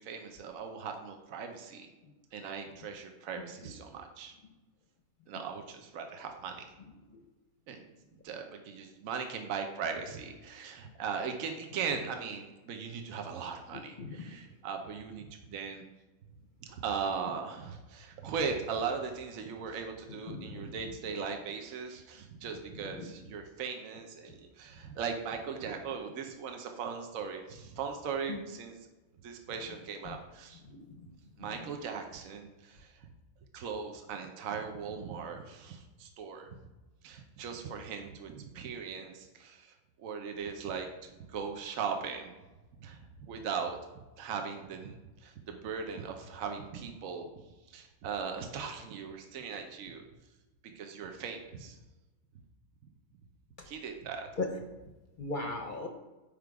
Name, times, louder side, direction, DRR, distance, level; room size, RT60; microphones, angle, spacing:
voice 1, 0.0-1.9 2.3-4.3 5.3-6.6 7.7-7.8 8.2-15.8 16.6-28.8 29.2-30.6 31.4-32.9 33.5-36.5 37.0-42.3 42.8-43.8 44.2-47.3 47.7-50.0 50.6-51.8 53.6-54.3, right 6 dB, 75° right, 4 dB, 1.2 m, -39 dB
voice 2, 13.7-14.4 20.3-20.7 22.9-23.1 28.3-28.4 30.1-30.2 30.7-31.1 31.4-31.5 54.4-54.5 55.2-55.9, left 3 dB, 50° left, 3 dB, 0.6 m, -38 dB
7.4 x 5.1 x 4.7 m, 1.1 s
omnidirectional pair, 1.5 m